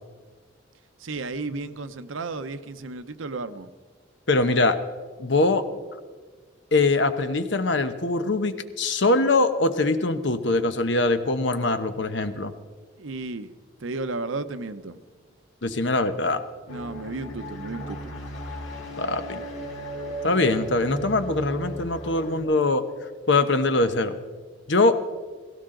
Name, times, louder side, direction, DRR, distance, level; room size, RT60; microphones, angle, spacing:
voice 1, 1.0-3.7 13.0-13.5 13.8-15.0 16.7-18.1, right 3 dB, 90° right, 11 dB, 0.8 m, -33 dB
voice 2, 4.3-4.8 5.2-5.6 6.7-12.5 15.6-16.4 19.0-19.4 20.2-22.8 23.3-24.1 24.7-25.0, left 2 dB, 65° left, 9 dB, 1.0 m, -22 dB
sound 1, 16.7-22.4, right 1 dB, 80° left, 3.7 m, -36 dB
17.0 x 16.5 x 3.8 m, 1.4 s
head